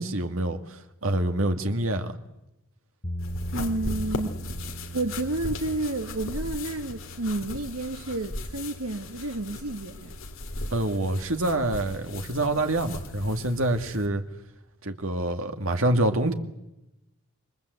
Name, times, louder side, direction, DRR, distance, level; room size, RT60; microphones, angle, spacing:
voice 1, 0.0-2.2 10.7-14.2 14.8-16.3, right 1 dB, 65° right, 2.2 m, -26 dB
sound 1, 3.0-11.1, right 1 dB, 35° left, 5.4 m, -41 dB
sound 2, 3.2-14.1, left 2 dB, 65° left, 3.0 m, -37 dB
voice 2, 3.5-4.4 4.9-10.1 16.2-16.3, right 2 dB, 85° right, 1.6 m, -30 dB
28.0 x 23.5 x 8.2 m
head